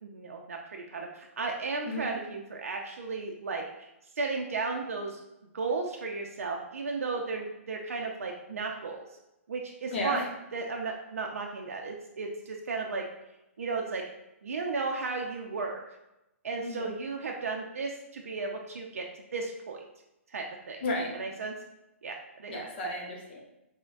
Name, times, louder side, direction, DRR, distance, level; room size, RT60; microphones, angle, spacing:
voice 1, 0.0-3.9 4.2-5.2 5.5-9.1 9.5-10.2 10.5-13.1 13.6-14.0 14.4-15.8 16.4-19.0 19.3-19.8 20.3-20.8 21.2-21.5 22.0-22.7, right 4 dB, 80° right, 1 dB, 0.5 m, -34 dB
voice 2, 9.9-10.3 16.6-17.0 20.8-21.1 22.5-23.4, left 1 dB, 50° left, -1 dB, 0.9 m, -33 dB
5.0 x 2.1 x 2.5 m, 0.91 s
hypercardioid pair, 135°, 8 cm